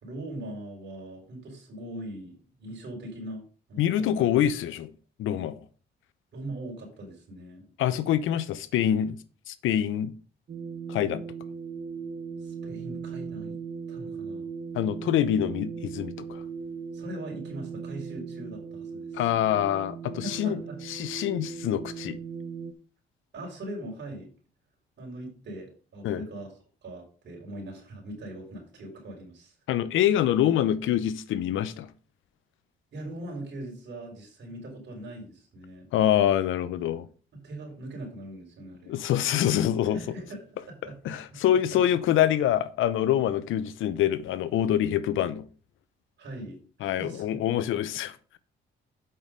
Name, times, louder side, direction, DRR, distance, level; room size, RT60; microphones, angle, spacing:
voice 1, 0.0-4.3 6.3-7.6 12.4-13.6 13.9-14.5 16.9-19.2 20.2-20.8 23.3-24.3 25.0-26.5 26.8-29.5 32.9-35.9 37.3-39.0 39.8-40.9 41.7-41.8 46.2-47.4, right 1 dB, 60° right, 4.3 m, -41 dB
voice 2, 3.8-4.9 5.2-5.6 7.8-9.2 9.5-10.1 10.9-11.2 14.7-16.4 19.1-20.6 20.9-22.2 26.0-26.2 29.7-31.9 35.9-37.1 38.9-40.0 41.0-45.5 46.8-48.4, left 11 dB, 85° left, 0.8 m, -25 dB
sound 1, 10.5-22.7, right 5 dB, 45° right, 1.1 m, -38 dB
7.8 x 5.9 x 5.2 m
cardioid pair, 90°, 20 cm